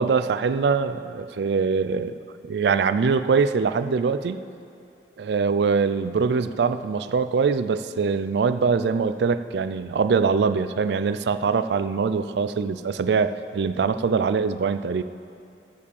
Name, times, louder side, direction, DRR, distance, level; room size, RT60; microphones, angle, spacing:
voice 1, 0.0-2.2 2.4-4.4 5.2-15.0, right 5 dB, 70° right, 12 dB, 0.4 m, -23 dB
14.0 x 5.0 x 7.0 m, 2.6 s
head